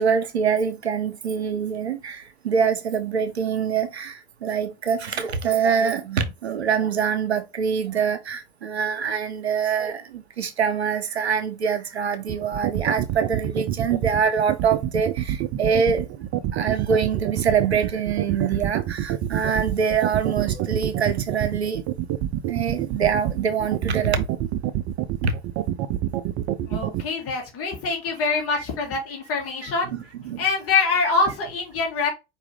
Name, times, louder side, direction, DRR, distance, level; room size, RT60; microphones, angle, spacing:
voice 1, 0.0-16.1 16.5-21.8 22.5-24.3 25.2-25.3 28.5-28.6 29.6-30.5 30.7-31.1, right 6 dB, 90° right, 0.6 m, -25 dB
sound 1, 12.3-27.0, right 12 dB, 50° right, 0.5 m, -26 dB
voice 2, 26.7-29.9 30.4-32.1, left 4 dB, 45° left, 1.8 m, -24 dB
4.7 x 2.7 x 3.2 m
figure-of-eight pair, 70°, 32 cm